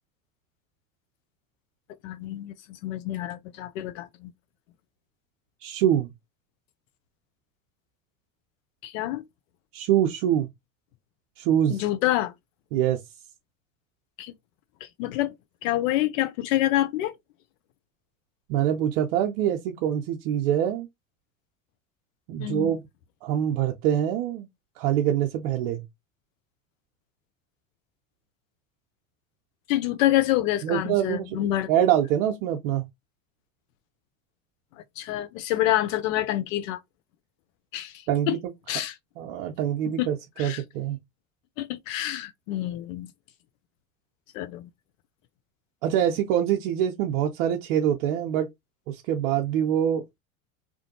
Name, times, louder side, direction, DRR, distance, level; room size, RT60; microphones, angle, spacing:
voice 1, 2.0-4.3 8.8-9.2 11.7-12.3 14.2-14.3 14.8-15.3 15.6-17.1 22.4-22.8 29.7-31.7 35.0-36.8 37.7-38.3 38.7-38.9 40.0-40.1 40.4-40.6 41.6-43.1 44.3-44.7, left 14 dB, 70° left, 0.6 m, -27 dB
voice 2, 5.6-6.1 9.7-10.5 11.4-11.8 12.7-13.0 18.5-20.9 22.3-22.9 23.2-24.5 24.8-25.9 30.6-32.9 38.1-38.4 39.2-41.0 45.8-48.5 48.9-50.0, right 10 dB, 65° right, 0.6 m, -25 dB
2.5 x 2.2 x 2.7 m
hypercardioid pair, 80°, 41 cm